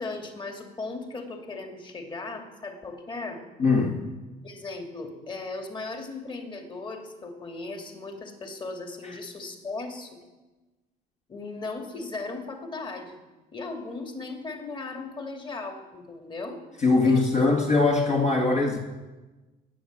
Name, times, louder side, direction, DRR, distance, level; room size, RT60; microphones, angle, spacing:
voice 1, 0.0-3.4 4.4-10.1 11.3-13.2 13.5-16.6 17.0-17.6, left 3 dB, 30° left, 3 dB, 2.7 m, -37 dB
voice 2, 3.6-4.1 9.0-9.2 16.8-18.8, left 3 dB, 45° left, -1 dB, 2.2 m, -22 dB
19.0 x 8.8 x 7.5 m, 1.1 s
cardioid pair, 110°, 17 cm